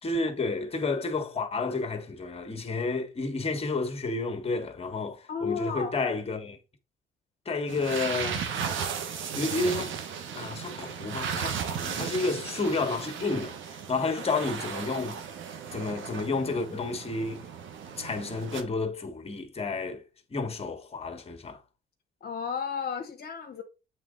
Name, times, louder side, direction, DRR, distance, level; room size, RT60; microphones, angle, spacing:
voice 1, 0.0-6.6 7.4-8.7 9.3-9.9 10.3-15.2 15.7-17.5 18.0-20.0 20.3-21.6, left 3 dB, 30° left, 1.3 m, -31 dB
voice 2, 5.3-5.9 14.0-14.1 22.2-23.6, left 6 dB, 55° left, 1.0 m, -33 dB
sound 1, 7.7-18.6, right 7 dB, 75° right, 1.0 m, -35 dB
7.5 x 3.6 x 3.8 m
cardioid pair, 90°, 20 cm